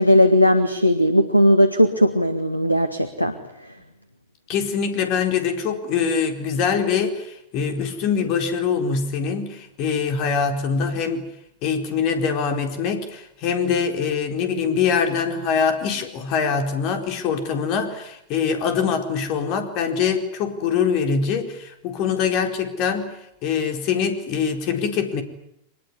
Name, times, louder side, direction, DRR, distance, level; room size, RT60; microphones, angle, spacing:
voice 1, 0.0-3.3, equal, 90° left, 9 dB, 1.8 m, -17 dB
voice 2, 4.5-11.3 11.6-25.2, left 6 dB, 40° left, 6 dB, 4.3 m, -23 dB
24.5 x 21.0 x 9.8 m, 0.78 s
figure-of-eight pair, 90°, 0 cm